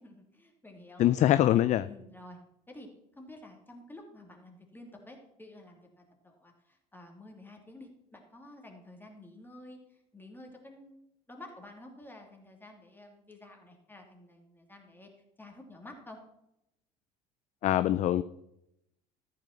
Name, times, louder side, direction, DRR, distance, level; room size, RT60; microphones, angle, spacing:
voice 1, 0.0-1.4 1.8-2.4 2.7-15.1 15.4-16.2, left 1 dB, 10° left, 2 dB, 2.6 m, -51 dB
voice 2, 1.0-1.9 17.6-18.2, left 13 dB, 35° left, 16 dB, 0.4 m, -23 dB
13.5 x 5.8 x 5.8 m, 0.83 s
figure-of-eight pair, 60°, 21 cm